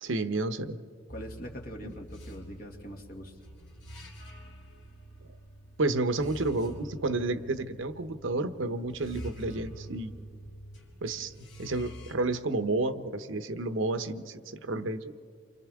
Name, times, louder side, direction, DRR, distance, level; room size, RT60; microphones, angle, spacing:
voice 1, 0.0-0.8 1.8-1.9 5.8-10.1 11.0-11.3 11.6-15.1, right 2 dB, 75° right, 10 dB, 0.9 m, -31 dB
sound 1, 1.1-12.1, right 1 dB, 65° left, 4.2 m, -46 dB
voice 2, 1.1-3.4, equal, 50° left, 1 dB, 2.1 m, -43 dB
29.0 x 24.5 x 3.6 m, 2.2 s
head